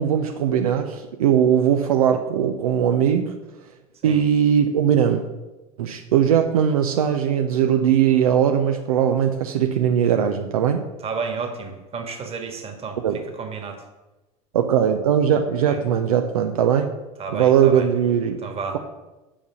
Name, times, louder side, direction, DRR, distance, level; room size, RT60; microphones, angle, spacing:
voice 1, 0.0-3.4 4.0-5.2 5.8-10.8 13.0-13.3 14.5-16.9 17.3-18.4, right 8 dB, 70° right, 5 dB, 0.7 m, -20 dB
voice 2, 11.0-13.0 13.4-13.8 15.7-15.8 17.2-17.9 18.4-18.8, right 5 dB, 30° right, 4 dB, 1.8 m, -31 dB
7.2 x 5.3 x 7.0 m, 1.1 s
figure-of-eight pair, 75°, 19 cm